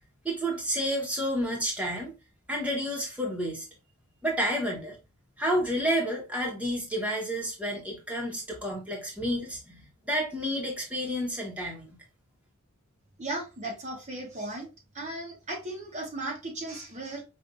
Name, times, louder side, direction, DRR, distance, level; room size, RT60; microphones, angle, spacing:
voice 1, 0.2-2.1 2.5-3.6 4.2-5.0 5.4-12.0, equal, 5° right, 1.1 m, -30 dB
voice 2, 13.2-14.7 14.9-17.2, right 2 dB, 30° right, 1.0 m, -36 dB
5.3 x 2.5 x 2.4 m
head